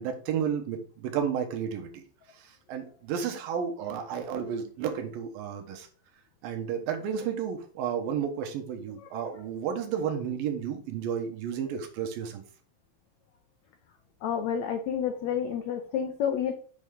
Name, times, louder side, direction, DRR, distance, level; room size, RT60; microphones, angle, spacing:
voice 1, 0.0-2.0 2.4-5.9 6.4-12.4, right 8 dB, 80° right, 4 dB, 2.8 m, -32 dB
voice 2, 14.2-16.5, left 8 dB, 90° left, 6 dB, 1.5 m, -29 dB
8.1 x 4.5 x 3.7 m, 0.43 s
omnidirectional pair, 4.2 m